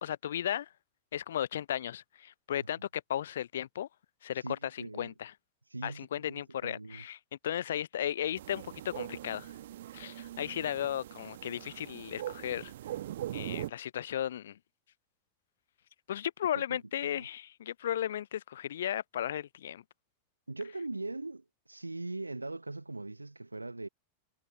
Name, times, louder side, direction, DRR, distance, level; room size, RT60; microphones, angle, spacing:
voice 1, 0.0-0.7 1.1-3.9 4.2-4.4 4.7-5.3 5.8-7.2 7.4-9.5 9.9-12.7 13.3-14.6 16.1-19.8, left 10 dB, 60° left, 0.4 m, -35 dB
voice 2, 4.4-5.1 5.7-7.0 16.5-17.3 20.5-23.9, right 2 dB, 85° right, 0.9 m, -41 dB
sound 1, 8.4-13.7, right 13 dB, 60° right, 1.2 m, -41 dB
figure-of-eight pair, 90°, 0 cm